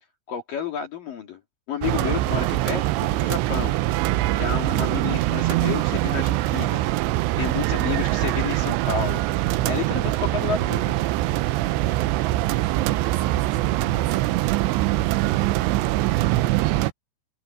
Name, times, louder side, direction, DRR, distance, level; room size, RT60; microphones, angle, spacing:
voice 1, 0.3-1.4 1.7-3.8 4.3-6.8 7.4-9.2 9.7-10.9, left 8 dB, 50° left, 3.2 m, -30 dB
sound 1, 1.8-16.9, right 16 dB, 85° right, 2.5 m, -23 dB
voice 2, 12.3-14.4 14.9-15.5, right 10 dB, 60° right, 3.0 m, -39 dB
omnidirectional pair, 6.0 m